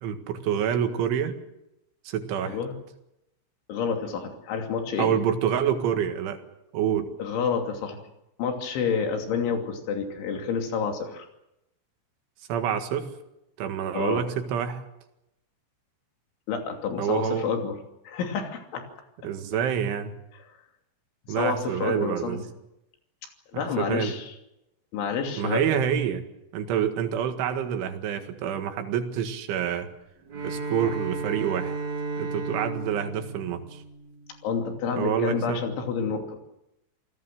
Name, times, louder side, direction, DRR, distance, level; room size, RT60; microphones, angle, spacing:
voice 1, 0.0-1.4 2.1-2.6 5.0-6.4 6.7-7.1 12.5-13.1 13.6-14.8 17.0-17.5 19.2-20.1 21.3-22.4 23.5-24.1 25.4-26.2 26.5-29.9 30.4-31.8 32.2-33.8 35.0-35.6, right 8 dB, 90° right, 7 dB, 4.3 m, -27 dB
voice 2, 2.4-2.8 3.7-5.1 7.2-8.0 8.4-11.3 13.9-14.3 16.5-17.8 18.1-18.9 21.4-22.4 23.5-24.3 24.9-25.6 34.4-36.4, left 6 dB, 85° left, 4 dB, 5.2 m, -29 dB
Bowed string instrument, 30.3-34.6, right 3 dB, 45° right, 3.8 m, -34 dB
28.0 x 18.0 x 7.7 m, 0.88 s
omnidirectional pair, 5.3 m